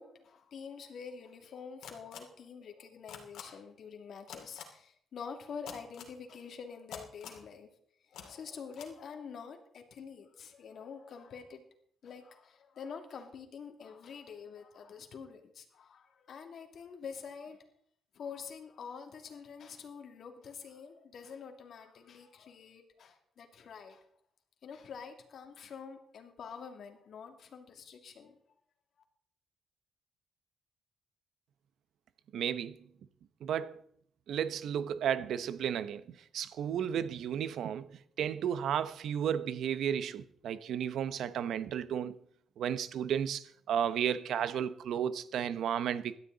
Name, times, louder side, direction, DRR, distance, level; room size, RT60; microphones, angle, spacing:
voice 1, 0.0-7.7 8.0-11.6 12.0-17.7 18.1-24.1 24.6-28.4, left 6 dB, 60° left, 2.5 m, -47 dB
sound 1, 1.8-2.2 3.1-3.4 4.3-4.6 5.7-6.1 6.9-7.4 8.1-8.2 8.7-8.9, left 9 dB, 85° left, 2.6 m, -45 dB
voice 2, 32.3-32.8 33.4-33.8 34.3-42.2 42.6-46.2, right 9 dB, 75° right, 0.9 m, -33 dB
17.5 x 12.5 x 4.0 m
cardioid pair, 120°, 0 cm